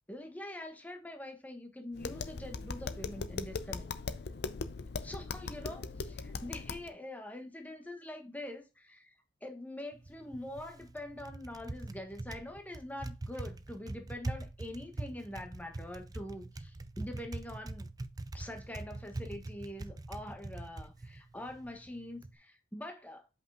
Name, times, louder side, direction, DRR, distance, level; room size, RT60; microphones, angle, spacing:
voice 1, 0.1-3.9 5.0-9.1 9.4-17.9 18.3-23.3, left 1 dB, 10° left, 1.2 m, -44 dB
Tap, 1.9-6.9, left 4 dB, 65° left, 0.6 m, -39 dB
Typing, 9.9-22.4, right 2 dB, 20° right, 0.4 m, -43 dB
5.3 x 5.1 x 3.5 m
head